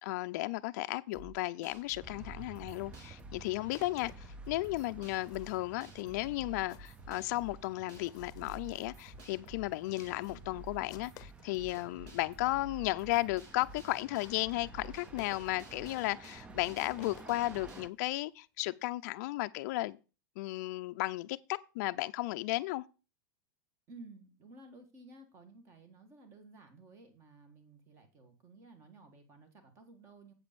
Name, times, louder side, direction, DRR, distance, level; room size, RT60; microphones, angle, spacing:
voice 1, 0.0-20.0 20.4-22.8, left 19 dB, 55° left, 0.4 m, -34 dB
sound 1, 1.1-17.8, right 2 dB, 60° right, 3.2 m, -52 dB
sound 2, 2.0-17.9, right 5 dB, 10° right, 0.4 m, -54 dB
sound 3, 3.3-12.0 12.6-12.7 12.9-13.0 13.2-13.3 13.5-17.9, left 15 dB, 35° left, 0.8 m, -57 dB
voice 2, 23.9-30.3, right 2 dB, 25° right, 1.8 m, -55 dB
8.1 x 5.0 x 6.8 m
supercardioid pair, 155°, 11 cm